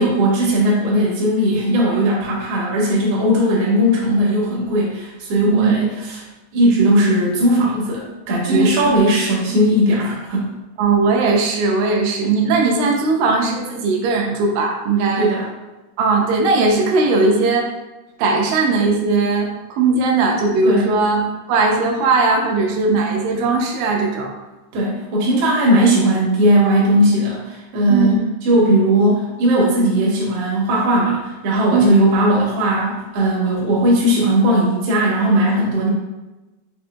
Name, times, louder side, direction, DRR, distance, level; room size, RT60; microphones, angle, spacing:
voice 1, 0.0-6.2 6.5-10.5 15.2-15.5 20.6-20.9 24.7-35.9, right 1 dB, 65° right, -5 dB, 1.6 m, -17 dB
voice 2, 8.5-8.9 10.8-15.3 16.0-17.7 18.2-21.2 21.5-24.3 27.9-28.2 31.7-31.9, right 3 dB, 80° right, 0 dB, 2.2 m, -18 dB
5.9 x 2.7 x 2.2 m, 1.1 s
omnidirectional pair, 3.9 m